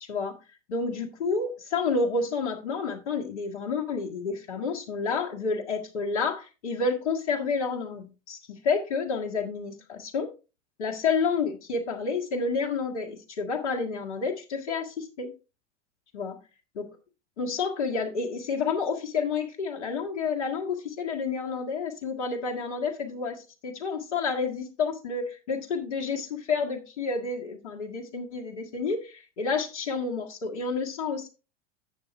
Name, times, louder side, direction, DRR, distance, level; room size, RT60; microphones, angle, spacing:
voice 1, 0.7-10.3 10.8-15.3 16.1-16.4 16.8-16.9 17.4-31.3, left 4 dB, 70° left, -1 dB, 1.8 m, -30 dB
9.1 x 7.1 x 3.5 m, 0.31 s
hypercardioid pair, 90°, 35 cm